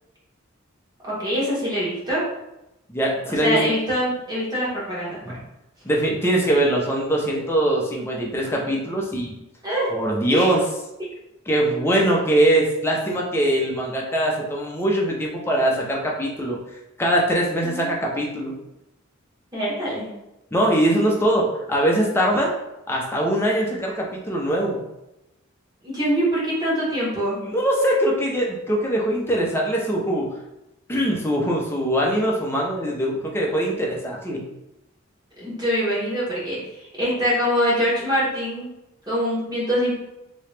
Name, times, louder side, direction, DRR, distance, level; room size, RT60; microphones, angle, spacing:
voice 1, 1.0-2.2 3.2-5.4 9.6-9.9 10.3-10.5 17.6-17.9 19.5-20.1 25.8-27.4 35.4-38.7 39.1-39.9, equal, 20° right, -8 dB, 1.4 m, -24 dB
voice 2, 2.9-3.6 5.2-5.4 5.8-9.3 9.9-10.6 11.5-16.6 17.0-18.5 20.5-22.5 22.9-24.8 27.4-30.3 30.9-34.5, right 1 dB, 10° left, -2 dB, 0.6 m, -22 dB
3.0 x 2.8 x 3.3 m, 0.91 s
head